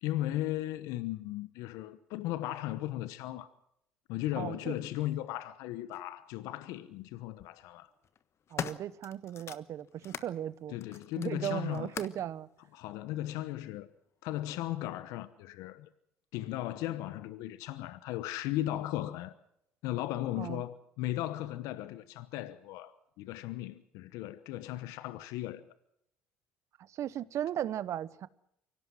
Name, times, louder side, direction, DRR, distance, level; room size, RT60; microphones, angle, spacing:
voice 1, 0.0-3.5 4.1-7.9 10.7-11.9 12.7-13.9 14.2-15.9 16.3-19.3 19.8-25.6, left 14 dB, 75° left, 1.0 m, -36 dB
voice 2, 4.4-4.8 8.5-10.8 11.2-12.5 20.4-20.6 26.9-28.3, right 11 dB, 60° right, 1.0 m, -36 dB
sound 1, 5.9-6.0 7.1-7.5 8.0-10.3 10.8-12.3 13.1-13.2, left 8 dB, 50° left, 1.4 m, -42 dB
24.5 x 17.0 x 7.7 m
hypercardioid pair, 65°, 6 cm